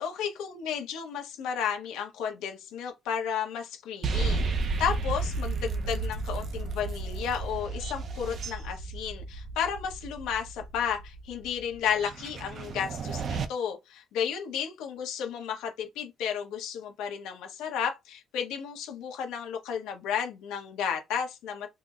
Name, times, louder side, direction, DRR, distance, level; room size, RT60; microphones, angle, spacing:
voice 1, 0.0-21.7, left 8 dB, 85° left, 0.9 m, -33 dB
sound 1, 4.0-13.5, right 3 dB, 40° right, 0.4 m, -33 dB
4.0 x 2.0 x 2.4 m
cardioid pair, 170°, 0 cm